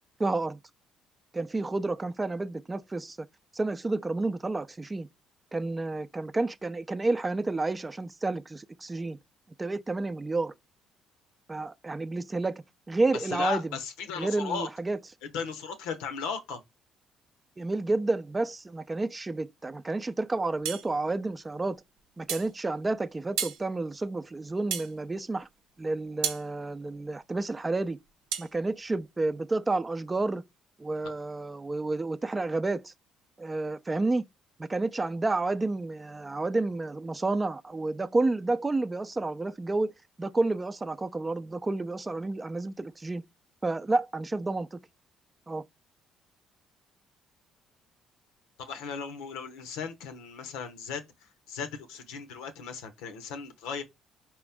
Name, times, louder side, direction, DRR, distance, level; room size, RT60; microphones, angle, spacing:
voice 1, 0.2-0.6 1.3-3.2 3.5-5.1 5.5-9.2 9.6-10.5 11.5-12.5 12.9-13.7 14.2-15.0 17.6-21.8 22.2-25.5 25.8-28.0 28.4-30.4 30.8-32.9 33.4-34.2 34.6-39.9 40.2-43.2 43.6-44.8 45.5-45.6, right 2 dB, 25° right, 0.5 m, -30 dB
voice 2, 13.1-14.7 15.2-16.6 31.0-31.1 48.6-53.8, left 6 dB, 75° left, 0.8 m, -36 dB
sound 1, 20.6-20.9 22.3-22.5 23.4-23.6 24.7-24.9 26.2-26.4 28.3-28.5, right 8 dB, 80° right, 0.7 m, -31 dB
4.9 x 3.1 x 3.4 m
hypercardioid pair, 55°, 0 cm